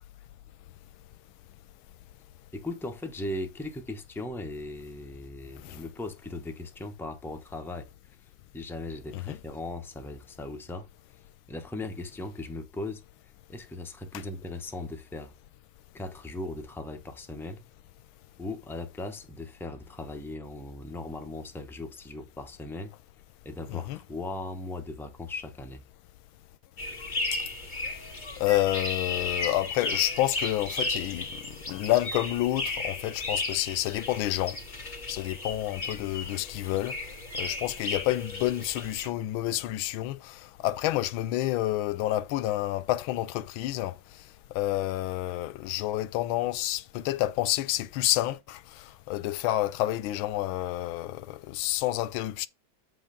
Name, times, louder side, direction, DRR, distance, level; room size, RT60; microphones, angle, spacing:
voice 1, 2.5-7.9 8.5-10.9 11.5-13.0 13.5-15.3 15.9-17.6 18.4-22.9 23.4-25.8, left 2 dB, 5° left, 0.3 m, -38 dB
sound 1, 26.8-39.1, left 3 dB, 25° left, 2.1 m, -35 dB
voice 2, 28.4-34.6 35.1-37.0 37.3-43.9 44.5-52.5, left 15 dB, 85° left, 1.4 m, -29 dB
8.2 x 3.7 x 5.2 m
omnidirectional pair, 2.2 m